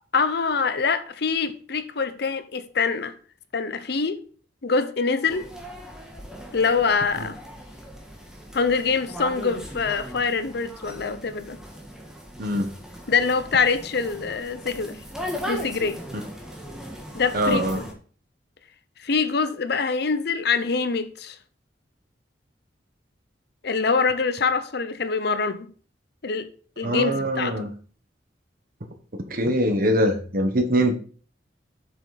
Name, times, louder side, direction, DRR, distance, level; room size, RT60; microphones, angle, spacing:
voice 1, 0.1-3.1 3.5-4.2 4.6-5.5 6.5-7.4 8.5-11.6 13.1-15.0 15.5-16.0 17.1-17.8 19.0-21.4 23.6-25.7 26.2-26.5 26.8-27.7, left 5 dB, 60° left, 0.7 m, -24 dB
sound 1, 5.2-17.9, equal, 5° right, 1.6 m, -38 dB
voice 2, 17.3-17.8 26.8-27.7 29.1-30.9, equal, 50° right, 1.3 m, -23 dB
7.7 x 6.0 x 4.1 m
head